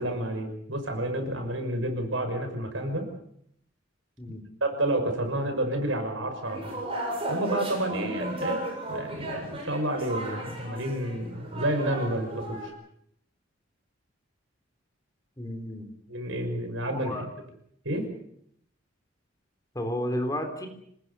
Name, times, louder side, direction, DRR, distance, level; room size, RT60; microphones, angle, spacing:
voice 1, 0.0-3.1 4.6-6.8 7.3-8.6 8.9-12.7 16.1-17.3 17.8-18.1, right 1 dB, 75° right, 6 dB, 5.9 m, -30 dB
sound 1, 6.4-12.7, right 1 dB, 30° right, 7.8 m, -35 dB
voice 2, 15.4-15.9 17.0-17.3 19.8-20.7, left 1 dB, 20° left, 5 dB, 3.6 m, -32 dB
26.5 x 20.5 x 6.9 m, 0.69 s
head